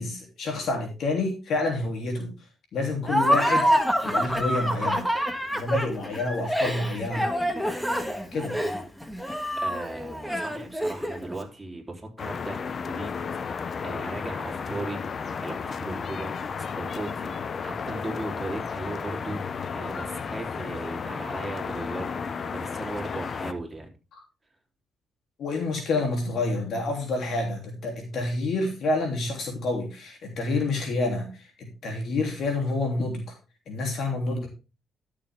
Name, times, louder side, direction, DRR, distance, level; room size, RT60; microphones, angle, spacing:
voice 1, 0.0-2.3 2.7-3.7 4.0-5.1 5.5-7.2 8.3-8.5 25.4-33.3 33.7-34.5, left 2 dB, 65° left, 2 dB, 3.2 m, -28 dB
Laughter, 3.1-11.3, equal, 5° left, 1.6 m, -26 dB
voice 2, 9.6-13.1 13.4-15.0 15.4-17.3 17.6-23.9, right 2 dB, 15° right, 0 dB, 3.5 m, -37 dB
sound 1, 12.2-23.5, left 6 dB, 45° left, 0.8 m, -33 dB
12.0 x 6.9 x 3.6 m, 0.31 s
cardioid pair, 90°, 0 cm